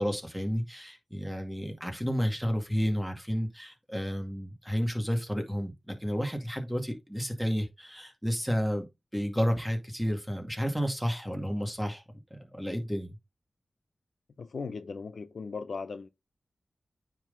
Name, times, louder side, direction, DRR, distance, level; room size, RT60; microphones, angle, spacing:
voice 1, 0.0-8.8 9.1-12.0 12.3-13.2, equal, ahead, 2.3 m, -31 dB
voice 2, 14.4-16.1, left 4 dB, 75° left, 0.7 m, -38 dB
9.2 x 3.9 x 4.0 m
wide cardioid pair, 70°, 0 cm